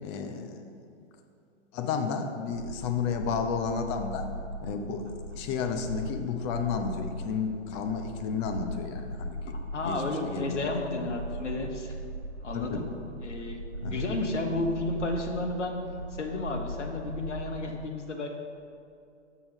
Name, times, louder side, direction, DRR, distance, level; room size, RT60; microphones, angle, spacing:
voice 1, 0.0-0.6 1.7-4.3 4.6-5.1 5.3-9.6 9.8-10.7 12.5-12.8 13.8-14.1, left 6 dB, 25° left, 5 dB, 0.5 m, -32 dB
sound 1, 2.5-17.6, equal, 75° right, 1.4 m, -39 dB
voice 2, 9.7-12.0 12.4-12.8 13.2-15.8 16.1-18.3, left 2 dB, 75° left, 3 dB, 1.2 m, -32 dB
6.9 x 6.4 x 5.3 m, 2.5 s
figure-of-eight pair, 115°, 36 cm